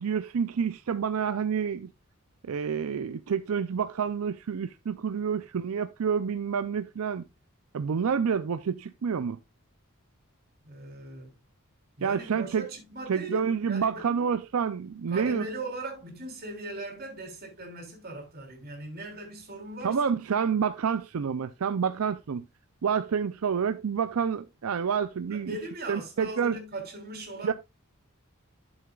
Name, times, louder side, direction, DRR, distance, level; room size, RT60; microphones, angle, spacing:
voice 1, 0.0-1.9 2.5-7.2 7.7-9.4 12.0-12.7 13.1-15.4 19.8-22.4 22.8-25.5 25.9-26.5 27.4-27.5, right 6 dB, 80° right, 0.5 m, -28 dB
voice 2, 10.6-11.3 12.0-14.3 15.1-20.1 25.3-27.5, right 2 dB, 45° right, 3.4 m, -39 dB
11.5 x 7.2 x 2.4 m
head